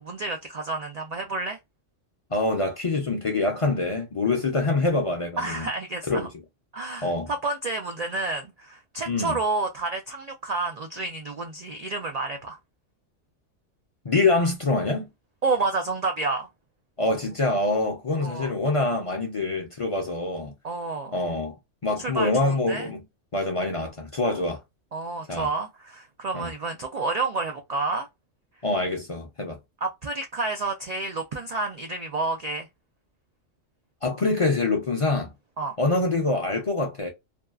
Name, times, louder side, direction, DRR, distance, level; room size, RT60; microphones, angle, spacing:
voice 1, 0.0-1.6 5.4-6.3 6.7-12.6 15.4-16.5 18.2-18.5 20.6-21.2 22.0-22.9 24.9-28.1 29.8-32.7 35.6-35.7, right 3 dB, 85° right, 0.3 m, -30 dB
voice 2, 2.3-5.7 6.1-6.3 7.0-7.3 9.1-9.4 14.0-15.1 17.0-20.5 21.1-21.5 21.8-23.0 23.3-24.6 25.3-25.5 26.3-26.5 28.6-29.6 34.0-35.3 35.8-37.1, left 2 dB, 40° left, 0.5 m, -25 dB
2.7 x 2.3 x 2.2 m
omnidirectional pair, 1.3 m